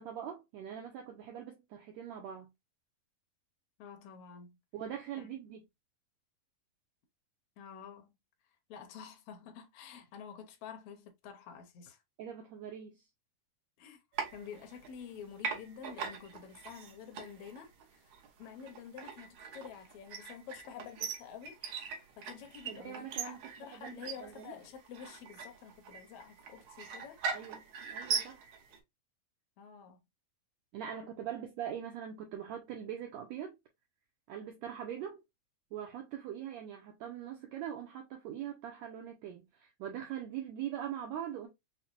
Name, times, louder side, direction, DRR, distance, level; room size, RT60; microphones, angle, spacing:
voice 1, 0.0-2.5 4.7-5.6 12.2-13.0 22.7-23.4 23.7-24.5 27.3-28.5 30.7-33.6 34.3-35.2 35.7-41.5, right 9 dB, 85° right, 1.5 m, -42 dB
voice 2, 3.8-4.6 5.2-5.3 7.6-8.1 8.7-12.0 13.8-14.0 14.3-18.1 18.4-27.2 29.6-30.0, left 7 dB, 80° left, 1.3 m, -49 dB
sound 1, 14.1-15.1 15.4-28.8, right 6 dB, 70° right, 1.9 m, -41 dB
5.6 x 2.2 x 2.3 m
omnidirectional pair, 3.9 m